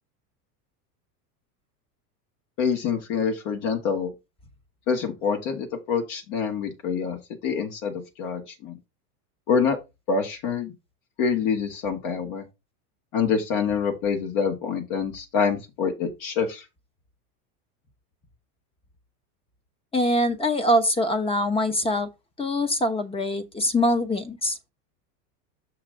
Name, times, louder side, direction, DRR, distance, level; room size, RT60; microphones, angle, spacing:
voice 1, 2.6-4.1 4.9-7.2 7.4-8.8 9.5-9.8 10.1-10.7 11.2-12.4 13.1-16.6, left 6 dB, 55° left, 1.9 m, -26 dB
voice 2, 19.9-22.1 22.4-24.6, left 1 dB, 10° left, 1.0 m, -23 dB
6.6 x 5.7 x 3.8 m
hypercardioid pair, 110°, 46 cm